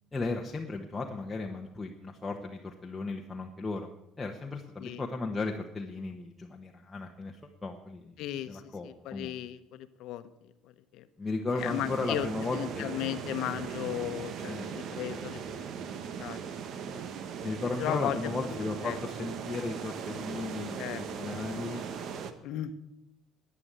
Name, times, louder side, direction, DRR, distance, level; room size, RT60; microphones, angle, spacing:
voice 1, 0.1-3.9 4.2-8.2 8.5-9.3 11.2-12.9 14.4-14.7 15.1-15.2 17.4-21.8, left 3 dB, 15° left, 0 dB, 1.2 m, -35 dB
voice 2, 8.2-11.1 11.5-12.3 12.5-15.7 16.0-16.4 16.9-17.0 17.8-18.2 18.8-19.0 20.7-21.0 22.4-22.7, left 13 dB, 70° left, 11 dB, 1.0 m, -36 dB
sound 1, 11.6-22.3, right 7 dB, 55° right, 1.2 m, -39 dB
11.0 x 9.8 x 8.2 m, 0.90 s
cardioid pair, 115°, 0 cm